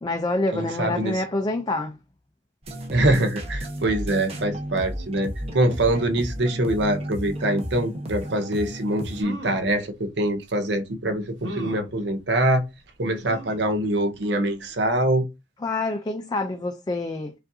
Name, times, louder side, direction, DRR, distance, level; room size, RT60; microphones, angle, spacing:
voice 1, 0.0-2.0 15.6-17.3, left 2 dB, 20° left, 0.4 m, -27 dB
voice 2, 0.5-1.2 2.9-12.6 13.0-15.3, right 1 dB, 65° right, 0.7 m, -24 dB
sound 1, 2.6-9.2, equal, 35° right, 0.8 m, -33 dB
sound 2, 9.1-9.7 10.5-10.6 11.4-11.9 13.2-13.7 14.2-14.3 14.6-14.7, equal, 85° right, 1.2 m, -36 dB
5.0 x 2.5 x 2.6 m
head